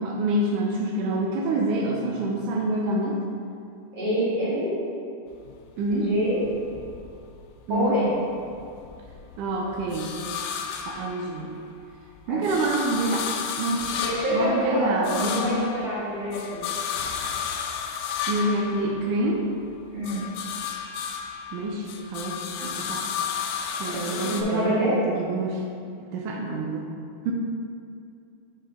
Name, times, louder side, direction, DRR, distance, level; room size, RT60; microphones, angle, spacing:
voice 1, 0.0-3.2 5.8-6.1 7.7-8.0 9.4-10.1 11.0-11.5 12.3-13.3 13.6-14.0 14.3-15.5 18.3-19.5 21.5-23.0 23.8-25.6 26.1-26.9 27.3-27.4, right 2 dB, 80° right, -1 dB, 2.0 m, -27 dB
voice 2, 3.9-4.7 5.9-6.4 7.7-8.2 12.3-12.5 14.0-16.6 19.9-20.2 23.8-25.0, equal, 35° right, -11 dB, 0.7 m, -26 dB
sound 1, 5.3-7.7 8.1-11.7 12.1-19.5 19.9-24.4, left 7 dB, 85° left, 2.1 m, -33 dB
7.3 x 5.1 x 3.6 m, 2.4 s
omnidirectional pair, 3.7 m